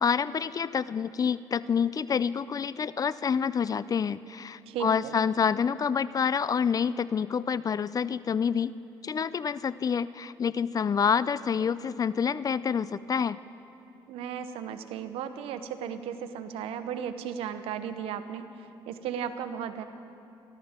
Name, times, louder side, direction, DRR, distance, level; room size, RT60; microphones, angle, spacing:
voice 1, 0.0-8.7 9.0-13.4, left 6 dB, 40° left, 17 dB, 0.4 m, -27 dB
voice 2, 4.7-5.1 14.1-18.5 18.9-19.8, right 8 dB, 80° right, 10 dB, 0.9 m, -35 dB
29.5 x 12.5 x 3.7 m, 2.7 s
supercardioid pair, 65°, 10 cm